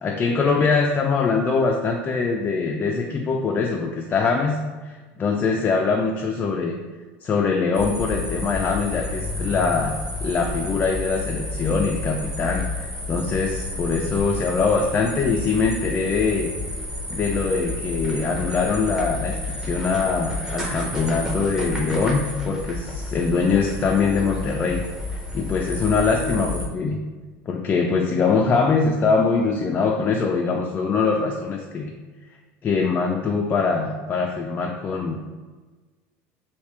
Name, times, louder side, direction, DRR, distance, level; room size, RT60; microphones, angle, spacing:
voice 1, 0.0-6.8 7.2-16.5 17.1-27.0 27.5-31.9 32.6-35.2, left 4 dB, 25° left, 1 dB, 0.3 m, -23 dB
sound 1, 7.7-26.7, left 2 dB, 10° right, 0.7 m, -30 dB
3.2 x 2.8 x 3.1 m, 1.3 s
supercardioid pair, 130°, 6 cm